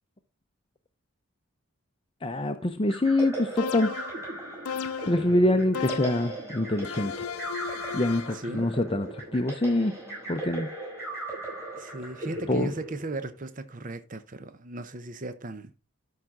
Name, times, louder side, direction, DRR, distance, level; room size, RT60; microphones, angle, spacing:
voice 1, 2.2-3.9 5.1-7.1 7.9-9.9 10.3-10.7 12.5-12.7, left 1 dB, 25° left, 0.6 m, -25 dB
sound 1, 2.9-13.5, right 2 dB, 10° right, 6.5 m, -38 dB
sound 2, 3.6-4.2 4.6-5.3 5.7-6.4 6.8-8.4, left 7 dB, 80° left, 0.6 m, -35 dB
voice 2, 8.3-8.7 11.8-15.7, right 2 dB, 35° right, 0.7 m, -36 dB
12.5 x 5.7 x 3.7 m
head